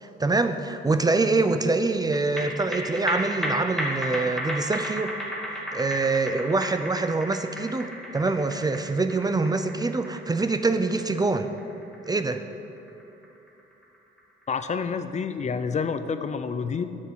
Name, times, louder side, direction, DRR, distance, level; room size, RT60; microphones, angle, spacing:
voice 1, 0.0-5.1 5.7-7.9 8.1-11.5 12.1-12.4, right 3 dB, 20° right, 9 dB, 0.5 m, -25 dB
sound 1, 2.1-14.8 15.1-15.2, equal, ahead, 2.1 m, -34 dB
voice 2, 14.5-16.8, left 5 dB, 35° left, 10 dB, 0.5 m, -28 dB
9.4 x 6.4 x 7.3 m, 2.8 s
cardioid pair, 90°, 20 cm